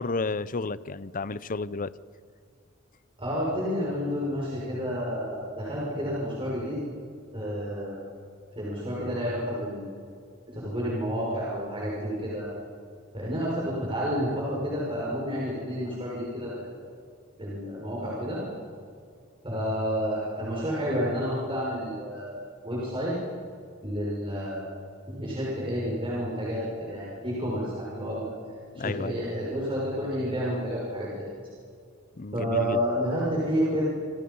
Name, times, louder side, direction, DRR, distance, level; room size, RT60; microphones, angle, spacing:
voice 1, 0.0-1.9 28.8-29.2 32.2-32.8, left 3 dB, 40° left, 17 dB, 0.7 m, -32 dB
voice 2, 3.2-6.8 7.3-8.0 8.6-9.9 10.5-12.5 13.1-16.9 17.4-18.4 19.4-22.4 22.6-23.2 23.8-24.7 25.1-28.2 28.7-31.3 32.3-33.9, equal, 25° right, -6 dB, 6.2 m, -30 dB
28.0 x 26.0 x 5.6 m, 2.3 s
head